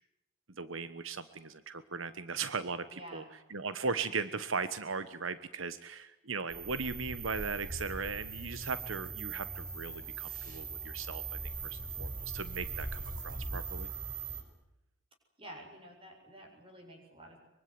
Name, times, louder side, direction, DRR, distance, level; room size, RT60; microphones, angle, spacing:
voice 1, 0.6-3.2 3.5-13.9, right 4 dB, 85° right, 13 dB, 1.3 m, -38 dB
voice 2, 2.9-3.3 15.4-17.4, right 1 dB, 25° right, 3 dB, 7.2 m, -50 dB
sound 1, 6.5-14.4, right 4 dB, 45° right, 5.5 m, -40 dB
24.0 x 24.0 x 9.7 m, 0.87 s
head